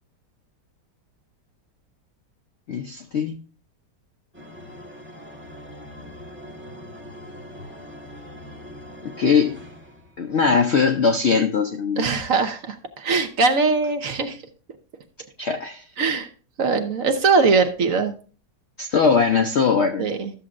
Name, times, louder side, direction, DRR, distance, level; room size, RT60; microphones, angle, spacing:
voice 1, 2.7-3.4 9.0-9.6 10.2-12.1 15.4-15.8 18.8-20.1, left 5 dB, 65° left, 0.6 m, -20 dB
sound 1, 4.3-10.3, left 1 dB, 5° right, 1.2 m, -41 dB
voice 2, 12.0-14.4 16.0-16.3 16.6-18.1 20.0-20.3, right 4 dB, 55° right, 1.2 m, -21 dB
13.0 x 7.3 x 2.5 m
omnidirectional pair, 1.9 m